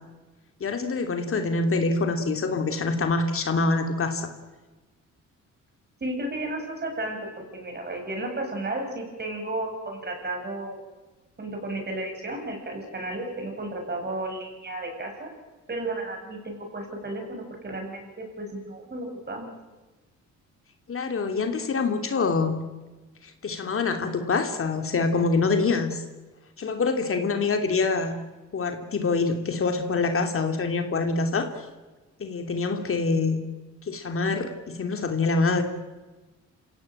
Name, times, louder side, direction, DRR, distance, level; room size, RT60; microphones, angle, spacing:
voice 1, 0.6-4.3 20.9-22.5 23.2-26.0 26.6-28.2 28.5-31.7 32.2-33.4 33.8-35.6, left 4 dB, 45° left, 5 dB, 2.7 m, -25 dB
voice 2, 6.0-7.2 7.5-10.8 11.4-15.3 15.7-19.5, right 2 dB, 35° right, 2 dB, 8.0 m, -33 dB
27.5 x 16.5 x 9.0 m, 1.2 s
cardioid pair, 90°, 30 cm